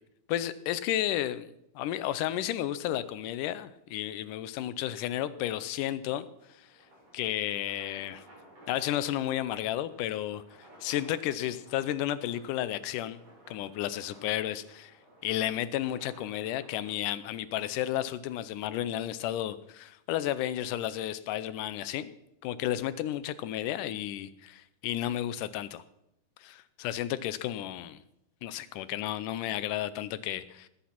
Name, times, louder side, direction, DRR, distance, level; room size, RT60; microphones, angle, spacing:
voice 1, 0.3-1.5 1.8-6.3 6.6-6.7 7.1-8.2 8.7-10.4 10.8-13.2 13.5-14.9 15.2-22.1 22.4-25.8 26.4-28.0 28.4-30.7, left 12 dB, 90° left, 14 dB, 2.3 m, -32 dB
sound 1, 6.1-17.3, right 1 dB, 75° right, 9.3 m, -57 dB
19.5 x 8.6 x 5.9 m, 0.84 s
omnidirectional pair, 3.6 m